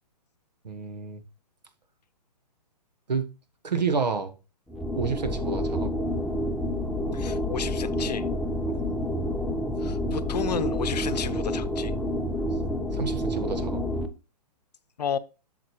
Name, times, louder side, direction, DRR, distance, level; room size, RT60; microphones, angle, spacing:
voice 1, 0.6-1.2 3.1-3.3 3.6-4.3 5.0-5.9 8.7-8.9 12.9-13.8, right 5 dB, 80° right, 1.4 m, -29 dB
sound 1, 4.7-14.1, equal, ahead, 0.5 m, -28 dB
voice 2, 7.1-8.3 9.8-11.9 15.0-15.2, left 7 dB, 70° left, 0.7 m, -32 dB
7.9 x 6.6 x 3.1 m
hypercardioid pair, 130°, 21 cm